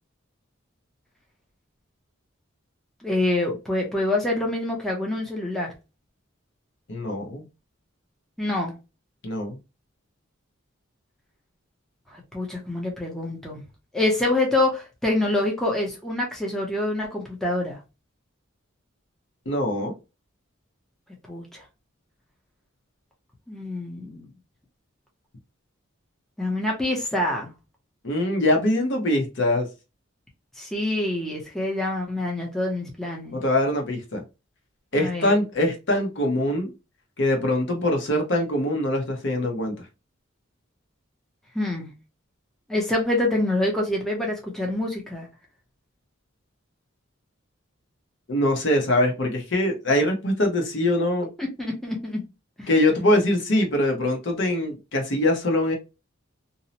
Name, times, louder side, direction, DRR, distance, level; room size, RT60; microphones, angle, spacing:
voice 1, 3.0-5.7 8.4-8.8 12.1-13.6 13.9-17.8 21.3-21.6 23.5-24.3 26.4-27.5 30.6-33.4 34.9-35.3 41.5-41.9 42.7-45.3 51.4-52.2 52.6-52.7, left 2 dB, ahead, -2 dB, 0.5 m, -26 dB
voice 2, 6.9-7.4 9.2-9.6 19.5-19.9 28.0-29.7 33.3-34.2 34.9-36.7 37.2-39.7 48.3-51.3 52.7-55.8, left 1 dB, 55° left, 2 dB, 0.8 m, -23 dB
2.7 x 2.0 x 2.7 m, 0.27 s
head